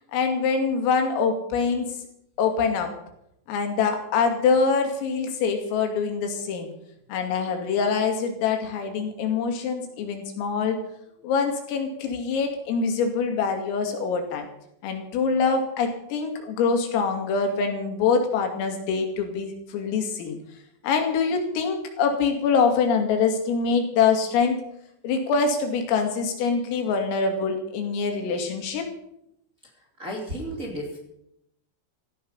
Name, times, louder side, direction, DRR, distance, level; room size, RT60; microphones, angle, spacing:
voice 1, 0.1-2.0 2.4-2.9 3.5-6.7 7.1-10.8 11.2-14.5 14.8-20.4 20.8-24.6 25.0-28.8, left 5 dB, 90° left, 4 dB, 5.2 m, -24 dB
voice 2, 30.0-31.0, equal, 20° right, -1 dB, 2.5 m, -32 dB
16.5 x 15.0 x 5.6 m, 0.78 s
omnidirectional pair, 5.8 m